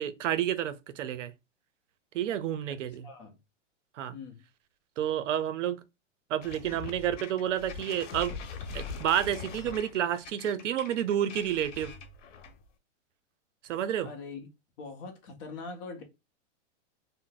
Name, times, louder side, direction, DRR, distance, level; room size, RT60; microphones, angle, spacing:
voice 1, 0.0-1.3 2.1-3.1 4.0-4.1 5.0-5.8 6.3-8.3 8.7-11.9 13.7-14.1, right 10 dB, 80° right, 0.6 m, -30 dB
voice 2, 2.7-3.4 4.1-4.4 14.0-14.5 14.8-16.0, left 4 dB, 30° left, 0.6 m, -43 dB
sound 1, 6.4-12.7, left 5 dB, 80° left, 0.9 m, -42 dB
2.6 x 2.0 x 3.8 m
hypercardioid pair, 150°, 36 cm